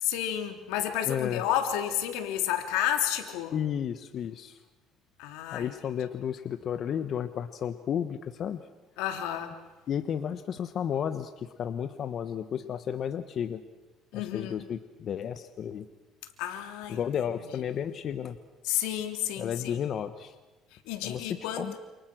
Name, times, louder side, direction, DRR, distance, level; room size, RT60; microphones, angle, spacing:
voice 1, 0.0-3.6 5.2-5.7 9.0-9.6 14.1-14.6 16.4-17.0 17.6-17.8 18.6-19.8 20.9-21.7, left 11 dB, 85° left, 3.2 m, -31 dB
voice 2, 1.1-1.4 3.5-4.6 5.5-8.6 9.9-13.6 14.1-15.9 16.9-18.4 19.4-20.3 21.0-21.7, left 8 dB, 50° left, 1.2 m, -32 dB
28.5 x 28.0 x 6.3 m
cardioid pair, 115°, 0 cm